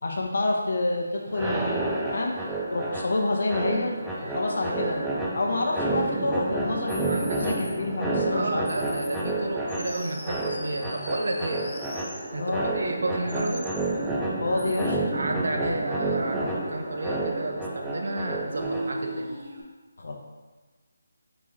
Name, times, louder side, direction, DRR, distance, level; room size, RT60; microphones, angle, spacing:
voice 1, 0.0-1.7 2.1-2.3 2.7-3.9 4.2-5.0 5.3-8.7 12.4-12.7 14.4-15.0 20.0-20.2, left 2 dB, 65° left, 0 dB, 0.8 m, -27 dB
Singing, 0.9-19.6, right 2 dB, 35° right, 0.7 m, -42 dB
sound 1, 1.3-19.2, right 2 dB, 5° right, 0.4 m, -30 dB
sound 2, 6.9-7.7 8.7-9.2 9.7-12.2 13.3-13.9 14.6-14.9, left 1 dB, 35° left, 0.9 m, -42 dB
voice 2, 7.0-7.5 8.3-11.7 12.3-13.7 15.1-19.4, right 2 dB, 70° right, 2 dB, 0.6 m, -31 dB
4.2 x 3.0 x 3.6 m, 1.4 s
figure-of-eight pair, 165°, 0 cm